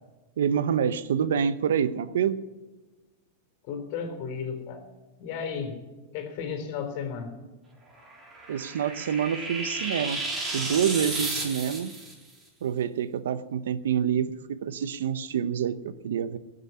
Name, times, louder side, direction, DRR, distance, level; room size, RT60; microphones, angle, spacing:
voice 1, 0.4-2.4 8.5-10.2 10.5-11.9 12.6-16.4, right 8 dB, 90° right, 14 dB, 0.9 m, -27 dB
voice 2, 3.7-4.9 5.2-5.8 6.1-7.4, left 6 dB, 50° left, 5 dB, 3.8 m, -34 dB
sound 1, 8.0-12.1, right 2 dB, 15° right, 3.9 m, -33 dB
16.5 x 8.1 x 9.7 m, 1.2 s
supercardioid pair, 150°, 0 cm